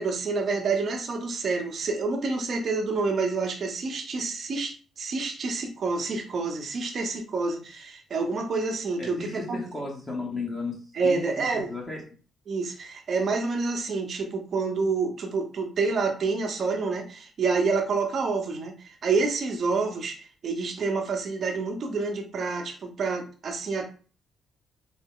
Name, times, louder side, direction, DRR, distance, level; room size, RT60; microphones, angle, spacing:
voice 1, 0.0-9.2 9.5-9.6 10.9-11.7 12.5-23.9, right 4 dB, 50° right, 3 dB, 0.8 m, -28 dB
voice 2, 9.0-12.0, left 3 dB, 20° left, -3 dB, 1.0 m, -34 dB
3.9 x 2.1 x 3.7 m, 0.38 s
cardioid pair, 90°, 0 cm